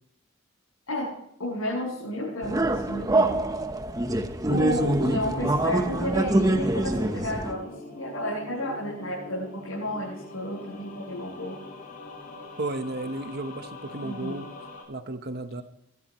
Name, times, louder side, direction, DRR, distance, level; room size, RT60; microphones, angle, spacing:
voice 1, 0.9-3.4 4.5-11.6 14.0-14.4, left 1 dB, 75° left, -7 dB, 7.4 m, -32 dB
sound 1, 2.4-7.5, right 2 dB, 15° right, 0.9 m, -25 dB
voice 2, 4.5-5.0 12.6-14.5 14.9-15.6, right 2 dB, 45° right, 8 dB, 1.0 m, -33 dB
sound 2, 5.5-14.8, left 1 dB, 40° left, 6.4 m, -43 dB
24.0 x 12.5 x 3.1 m, 0.75 s
head